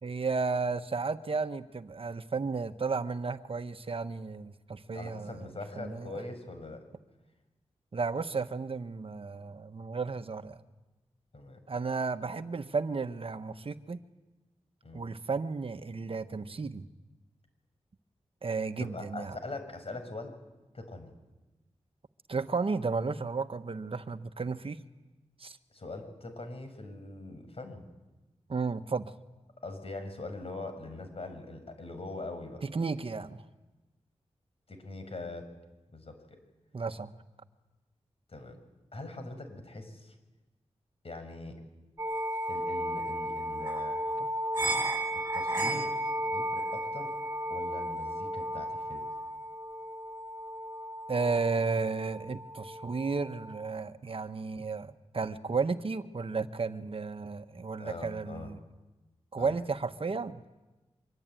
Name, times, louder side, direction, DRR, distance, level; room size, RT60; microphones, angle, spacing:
voice 1, 0.0-5.5 5.8-6.1 7.9-10.6 11.7-14.0 14.9-16.8 18.4-19.4 22.3-24.8 25.4-25.6 28.5-29.1 32.6-33.4 36.7-37.1 51.1-58.6 59.3-60.4, right 4 dB, 55° right, 9 dB, 1.3 m, -33 dB
voice 2, 4.9-6.8 11.3-11.6 14.8-15.0 18.8-20.3 20.7-21.1 25.7-27.8 29.6-32.6 34.7-35.5 35.9-36.4 38.3-38.6 38.9-40.1 41.0-41.6 42.5-44.0 45.3-47.1 47.5-49.1 57.8-58.5 59.4-59.6, left 2 dB, 55° left, 7 dB, 6.0 m, -42 dB
sound 1, 42.0-53.7, right 1 dB, 25° right, 7.5 m, -34 dB
24.5 x 23.5 x 9.2 m, 1.1 s
cardioid pair, 55°, 12 cm